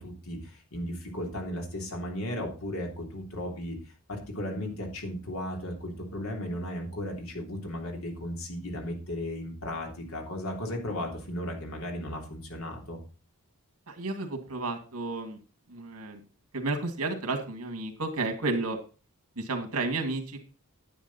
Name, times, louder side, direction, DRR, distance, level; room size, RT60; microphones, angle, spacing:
voice 1, 0.0-3.7 4.1-13.0, left 1 dB, 70° left, 1 dB, 3.3 m, -35 dB
voice 2, 13.9-15.4 15.7-16.2 16.5-18.8 19.4-20.5, right 3 dB, 80° right, 5 dB, 2.3 m, -32 dB
10.0 x 8.8 x 4.2 m, 0.34 s
head